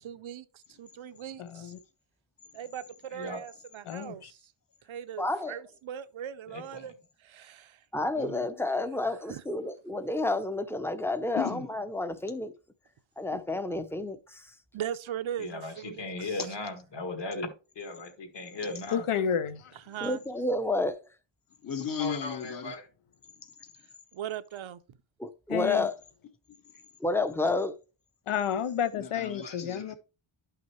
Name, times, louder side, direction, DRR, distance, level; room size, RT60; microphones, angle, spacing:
voice 1, 0.0-1.7 2.5-4.4 4.9-6.9 7.2-7.8 9.3-9.4 14.7-16.4 19.9-20.2 24.1-24.8, right 10 dB, 70° right, 0.7 m, -39 dB
voice 2, 1.4-1.8 3.9-4.3 18.9-19.7 25.5-25.9 28.3-29.9, left 8 dB, 85° left, 0.9 m, -31 dB
voice 3, 5.2-5.6 7.9-12.5 13.2-14.5 20.0-21.0 25.2-25.9 27.0-27.7, left 2 dB, 5° left, 0.6 m, -30 dB
voice 4, 6.5-6.8 15.4-17.5 17.8-19.0 22.0-22.8 29.1-30.0, left 2 dB, 55° left, 1.9 m, -38 dB
voice 5, 8.1-8.5 11.3-11.7 13.3-13.4 16.4-16.6 18.4-19.0 21.6-22.8 23.3-23.7 26.5-26.9 28.9-29.9, left 8 dB, 40° left, 1.0 m, -37 dB
11.5 x 5.8 x 3.1 m
wide cardioid pair, 140°, 50 cm